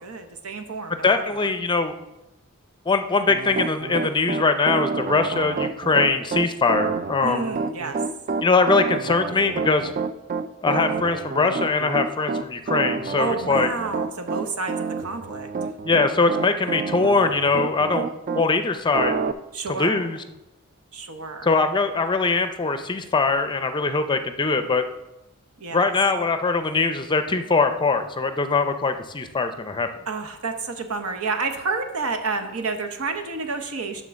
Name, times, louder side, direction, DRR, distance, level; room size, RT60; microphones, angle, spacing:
voice 1, 0.0-1.5 7.2-8.0 13.2-15.5 19.5-20.1 20.9-21.5 25.6-25.9 30.1-34.0, right 4 dB, 80° right, 6 dB, 1.0 m, -30 dB
voice 2, 1.0-1.9 2.9-7.5 8.4-9.9 10.6-13.7 15.8-18.1 18.3-19.1 19.7-20.2 21.4-24.8 25.7-29.9, left 4 dB, 20° left, 9 dB, 0.5 m, -22 dB
Piano, 3.3-18.5 18.9-19.3, right 4 dB, 35° right, 0.3 m, -28 dB
9.4 x 3.8 x 6.3 m, 0.95 s
head